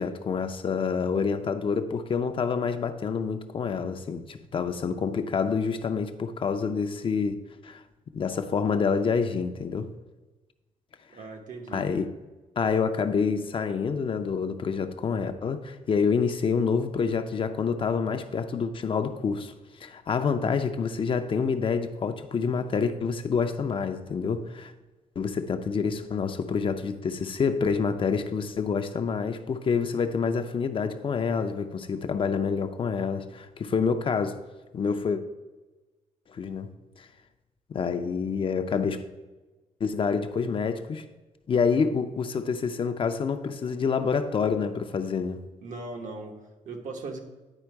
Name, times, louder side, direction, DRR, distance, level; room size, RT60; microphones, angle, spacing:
voice 1, 0.0-7.8 8.1-9.9 11.7-12.1 12.6-19.5 19.8-24.7 25.2-34.4 34.7-35.2 36.3-36.7 37.0-37.1 37.7-39.0 39.8-41.0 41.5-45.4, left 5 dB, 40° left, 0.5 m, -27 dB
voice 2, 11.1-11.8 45.6-46.4 46.6-47.2, right 3 dB, 70° right, 1.1 m, -38 dB
9.8 x 4.5 x 4.6 m
cardioid pair, 125°, 13 cm